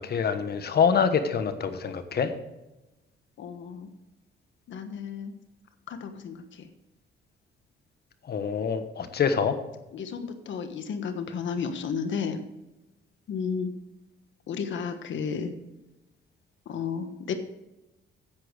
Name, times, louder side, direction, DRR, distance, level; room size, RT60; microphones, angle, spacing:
voice 1, 0.0-2.3 8.3-9.6, left 6 dB, 55° left, 10 dB, 1.3 m, -25 dB
voice 2, 3.4-3.9 4.7-5.3 5.9-6.7 9.9-12.4 13.3-13.7 14.5-15.5 16.7-17.3, left 6 dB, 70° left, 8 dB, 1.4 m, -33 dB
10.5 x 8.6 x 4.8 m, 0.97 s
cardioid pair, 90°, 20 cm